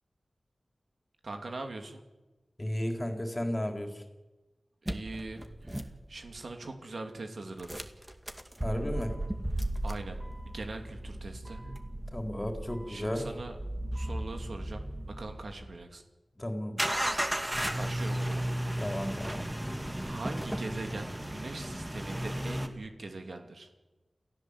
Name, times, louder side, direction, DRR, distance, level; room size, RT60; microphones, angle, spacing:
voice 1, 1.2-2.0 4.8-7.8 9.8-10.2 10.4-11.6 12.9-13.6 13.8-16.0 17.8-18.4 20.0-23.7, right 2 dB, 75° right, 5 dB, 2.7 m, -41 dB
voice 2, 2.6-4.0 8.6-9.2 11.6-11.7 12.1-13.3 16.4-16.8 18.8-19.5, left 1 dB, 20° left, 4 dB, 3.9 m, -34 dB
sound 1, 4.9-6.5 7.6-15.7 16.8-22.7, right 1 dB, 15° right, 2.2 m, -35 dB
29.0 x 15.5 x 8.2 m, 1.1 s
wide cardioid pair, 70°, 0 cm